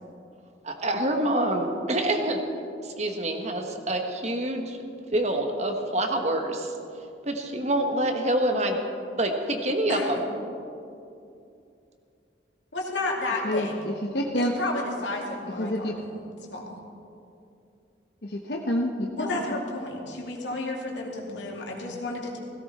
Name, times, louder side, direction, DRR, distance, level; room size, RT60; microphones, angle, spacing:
voice 1, 0.6-2.4 2.8-4.8 5.1-8.8 9.2-10.2, right 1 dB, 40° right, 4 dB, 1.3 m, -26 dB
voice 2, 9.9-10.2 12.7-13.7 14.3-16.8 19.2-22.4, left 2 dB, 90° left, -1 dB, 2.6 m, -32 dB
voice 3, 13.4-14.6 15.6-15.9 18.2-19.6, left 1 dB, 60° left, 1 dB, 1.0 m, -28 dB
16.5 x 16.5 x 4.3 m, 2.6 s
head